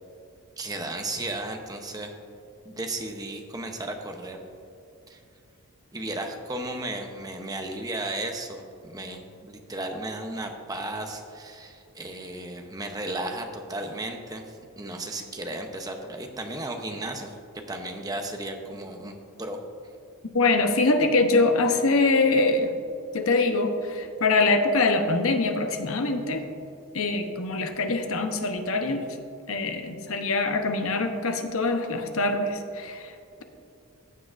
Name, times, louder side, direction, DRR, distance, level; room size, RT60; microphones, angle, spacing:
voice 1, 0.6-2.1 2.6-4.4 5.1-5.2 5.9-17.4 17.7-19.6, right 2 dB, 15° right, 4 dB, 0.7 m, -34 dB
voice 2, 20.3-22.7 23.1-26.5 26.9-29.1 29.5-33.1, left 3 dB, 65° left, 6 dB, 0.8 m, -24 dB
15.0 x 7.6 x 2.5 m, 2.6 s
head